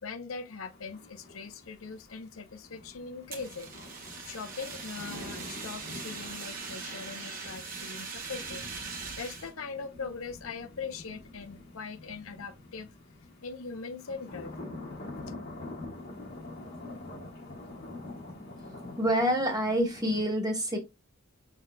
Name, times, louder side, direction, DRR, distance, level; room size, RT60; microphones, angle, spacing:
voice 1, 0.0-3.7 4.2-8.6 9.2-12.9 13.4-14.5, left 5 dB, 90° left, 0.7 m, -41 dB
sound 1, 0.7-20.2, left 2 dB, 50° left, 1.3 m, -46 dB
Fire, 3.3-9.5, right 5 dB, 45° right, 1.2 m, -41 dB
voice 2, 19.0-20.8, equal, 20° right, 1.2 m, -27 dB
5.8 x 3.6 x 2.2 m
head